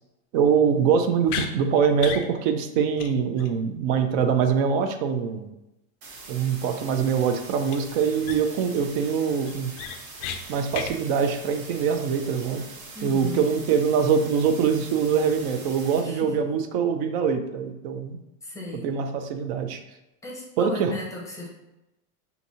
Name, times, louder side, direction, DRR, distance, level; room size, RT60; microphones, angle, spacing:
voice 1, 0.3-5.5 6.3-9.7 10.5-12.7 13.0-18.2 18.8-19.8 20.6-20.9, right 6 dB, 45° right, 8 dB, 0.5 m, -23 dB
sound 1, 1.3-1.5 2.0-2.3 2.6-2.7 3.0-3.1 3.4-3.5 7.7-7.8 8.2-8.6 9.0-9.1 9.5-10.4 10.7-10.9, left 7 dB, 40° left, 0.4 m, -32 dB
sound 2, 6.0-16.0, right 3 dB, 85° right, 1.4 m, -43 dB
voice 2, 12.9-13.5 16.0-16.5 18.4-18.9 20.2-21.5, left 2 dB, 5° left, -2 dB, 0.7 m, -36 dB
5.7 x 2.7 x 2.7 m, 0.94 s
supercardioid pair, 140°, 43 cm